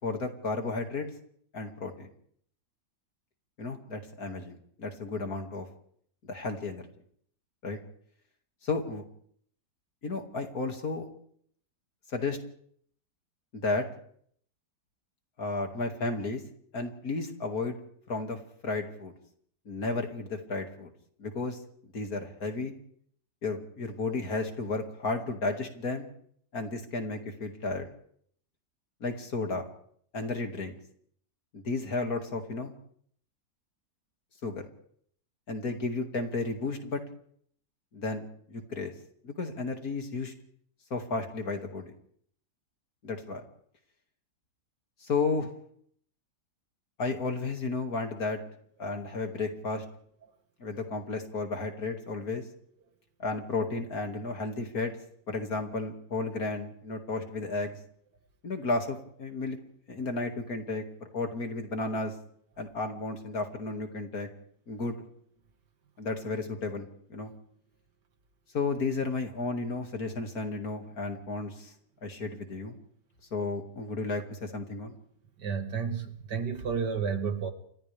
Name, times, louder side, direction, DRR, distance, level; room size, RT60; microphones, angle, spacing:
voice 1, 0.0-1.1 1.5-2.1 3.6-5.7 6.2-6.8 7.6-7.8 8.6-9.0 10.0-11.1 12.1-12.4 13.5-13.9 15.4-16.4 16.7-17.8 18.1-19.1 19.7-20.9 21.2-22.7 23.4-26.1 26.5-27.9 29.0-29.7 30.1-30.8 31.5-32.7 34.4-34.7 35.5-37.0 37.9-38.9 39.2-40.3 40.9-41.9 43.0-43.4 45.0-45.5 47.0-48.4 48.8-49.8 50.6-52.4 53.2-54.9 55.3-57.8 58.4-59.6 59.9-60.8 61.1-62.1 62.6-64.3 64.7-65.0 66.0-67.3 68.5-71.7 72.0-72.8 73.3-75.0, left 3 dB, 55° left, 4 dB, 2.7 m, -33 dB
voice 2, 75.4-77.5, right 6 dB, 75° right, 6 dB, 2.4 m, -31 dB
30.0 x 25.0 x 3.5 m, 0.64 s
omnidirectional pair, 1.8 m